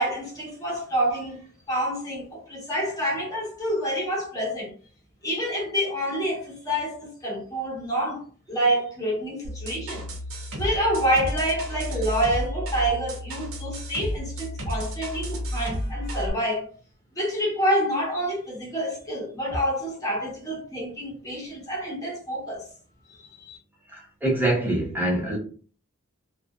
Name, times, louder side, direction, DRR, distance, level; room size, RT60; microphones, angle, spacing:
voice 1, 0.0-1.4 1.7-4.7 5.2-8.2 8.5-10.0 10.5-16.7 17.2-22.7 23.2-23.6, right 1 dB, 15° left, 1.0 m, -27 dB
sound 1, 9.4-16.3, equal, 85° right, 0.7 m, -32 dB
voice 2, 23.9-25.4, right 1 dB, 10° right, 0.7 m, -25 dB
2.5 x 2.2 x 2.2 m
head